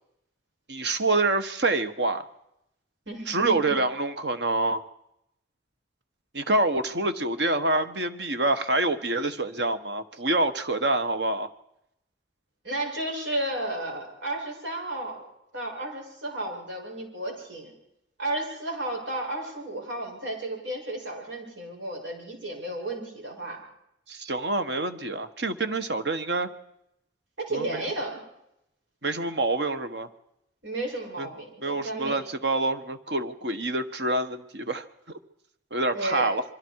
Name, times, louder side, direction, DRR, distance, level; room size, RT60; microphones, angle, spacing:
voice 1, 0.7-2.2 3.3-4.8 6.3-11.5 24.1-26.5 27.5-27.8 29.0-30.1 31.2-31.3 31.6-34.8 35.7-36.4, right 2 dB, 65° right, 9 dB, 1.5 m, -26 dB
voice 2, 3.1-3.8 12.6-15.2 15.5-17.7 18.2-23.6 27.4-28.2 30.6-32.2 35.9-36.3, right 1 dB, 90° right, 0 dB, 7.8 m, -33 dB
27.0 x 24.0 x 4.9 m, 0.81 s
head